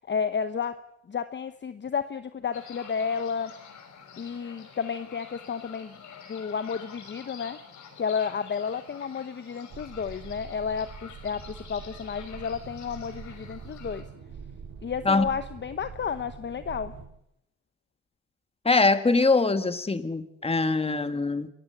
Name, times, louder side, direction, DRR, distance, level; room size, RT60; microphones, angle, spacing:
voice 1, 0.1-0.8 1.1-3.6 4.2-5.9 6.3-7.6 8.0-14.0 14.8-16.9, left 6 dB, 35° left, 11 dB, 1.0 m, -31 dB
sound 1, 2.5-14.0, left 6 dB, 75° left, 5.4 m, -48 dB
sound 2, 9.7-17.1, right 6 dB, 70° right, 3.7 m, -44 dB
voice 2, 18.7-21.5, left 3 dB, 20° left, 10 dB, 1.8 m, -23 dB
26.5 x 15.0 x 8.0 m, 0.78 s
cardioid pair, 90°, 30 cm